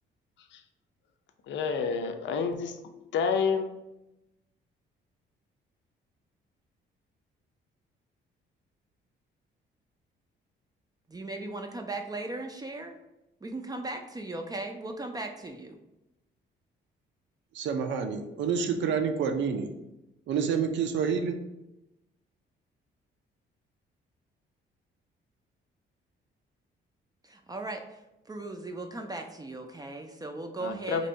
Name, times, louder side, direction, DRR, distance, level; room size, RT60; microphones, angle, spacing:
voice 1, 1.5-2.8 3.1-3.7 30.6-31.0, left 6 dB, 65° left, 6 dB, 0.5 m, -29 dB
voice 2, 11.1-13.0 13.4-15.8 27.2-28.0 28.3-31.1, right 2 dB, 20° right, 4 dB, 0.4 m, -37 dB
voice 3, 17.5-19.7 20.3-21.4, right 6 dB, 70° right, 6 dB, 0.5 m, -28 dB
2.9 x 2.6 x 4.3 m, 0.93 s
cardioid pair, 90°, 20 cm